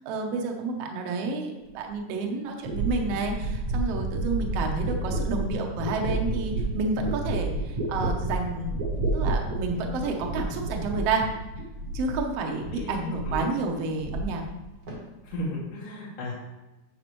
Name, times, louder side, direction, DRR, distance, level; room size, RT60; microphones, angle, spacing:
voice 1, 0.1-8.8 9.1-11.3 11.9-14.4, right 3 dB, 70° right, 2 dB, 1.6 m, -30 dB
sound 1, 1.9-2.0 2.6-12.3 12.6-13.5 13.8-14.6 14.9-15.4, right 2 dB, 50° right, 1.1 m, -30 dB
voice 2, 15.2-16.3, left 1 dB, 85° left, -6 dB, 2.9 m, -34 dB
9.3 x 6.5 x 3.1 m, 1.0 s
omnidirectional pair, 3.6 m